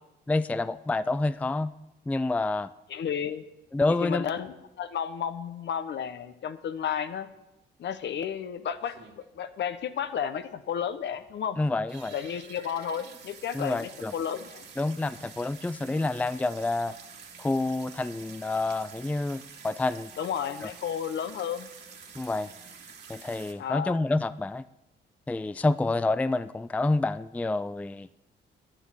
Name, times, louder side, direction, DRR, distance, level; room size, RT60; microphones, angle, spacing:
voice 1, 0.3-1.7 2.1-2.7 3.7-4.3 11.6-12.1 13.5-14.1 14.8-16.9 17.4-20.1 20.6-20.7 22.2-22.5 23.1-24.6 25.3-28.1, left 2 dB, 5° left, 15 dB, 0.4 m, -28 dB
voice 2, 2.9-3.4 4.0-7.3 7.8-11.6 12.1-14.7 15.8-16.0 20.2-21.7 23.6-24.0, left 8 dB, 65° left, 10 dB, 1.2 m, -32 dB
sound 1, 7.8-7.9 8.3-8.4 8.8-9.5 9.8-9.9 10.1-10.2 10.6-10.7 11.2-11.4 11.8-23.5, right 6 dB, 55° right, 2.5 m, -48 dB
11.5 x 10.5 x 7.5 m, 0.92 s
cardioid pair, 90°, 20 cm